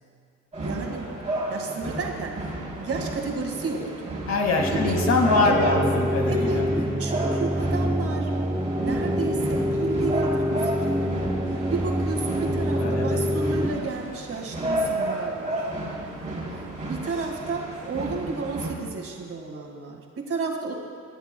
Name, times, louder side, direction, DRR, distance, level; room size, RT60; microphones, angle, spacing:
sound 1, 0.5-18.7, right 1 dB, 25° right, 3.2 m, -32 dB
voice 1, 0.6-1.1 1.5-2.5 2.8-4.1 4.7-5.0 5.4-5.8 6.3-8.3 8.8-11.3 11.7-15.6 16.5-16.6 16.9-20.8, right 4 dB, 50° right, 1 dB, 1.9 m, -32 dB
voice 2, 4.3-6.7 12.8-13.2, left 3 dB, 60° left, 2 dB, 2.0 m, -23 dB
sound 2, 4.6-13.7, equal, 10° right, 0.6 m, -26 dB
21.0 x 12.5 x 2.3 m, 2.2 s
cardioid pair, 90°, 30 cm